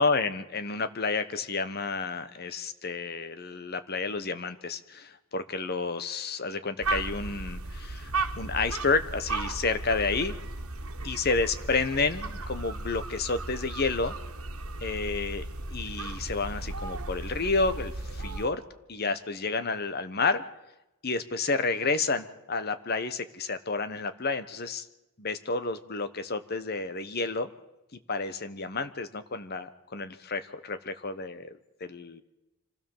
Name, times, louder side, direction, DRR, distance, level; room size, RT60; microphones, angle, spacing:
voice 1, 0.0-10.3 11.0-14.1 14.8-15.4 15.7-18.6 18.9-20.4 21.0-24.9 25.2-27.5 28.1-31.5 31.8-32.2, left 4 dB, 45° left, 11 dB, 1.1 m, -30 dB
sound 1, 6.8-18.5, right 3 dB, 85° right, 1.6 m, -35 dB
25.5 x 16.0 x 7.2 m, 0.94 s
head